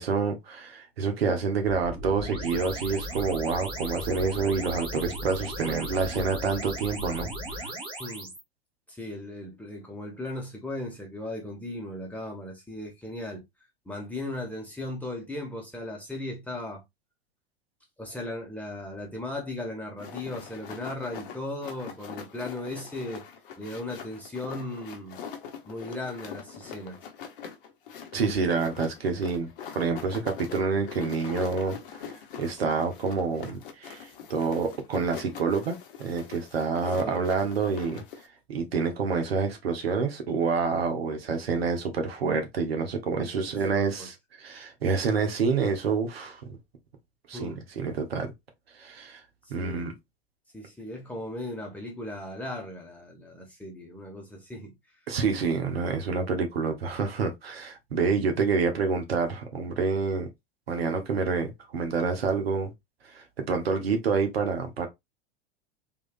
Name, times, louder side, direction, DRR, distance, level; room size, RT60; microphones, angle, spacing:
voice 1, 0.0-7.3 7.6-7.7 28.1-29.5 29.7-32.1 32.4-38.0 38.5-46.4 47.3-48.3 48.8-49.2 49.5-49.9 55.1-60.3 60.7-62.7 63.1-64.9, right 5 dB, 70° right, 1.1 m, -28 dB
sound 1, 1.6-8.4, right 1 dB, 15° right, 1.7 m, -36 dB
voice 2, 8.0-8.3 8.9-13.4 13.8-16.8 18.0-23.2 23.6-25.2 25.7-27.0 37.0-37.3 43.4-44.1 47.3-47.6 49.6-49.9 50.5-54.7, left 1 dB, 5° left, 1.3 m, -37 dB
sound 2, 20.0-38.3, left 7 dB, 55° left, 0.8 m, -43 dB
3.6 x 3.1 x 2.4 m
figure-of-eight pair, 90°, 31 cm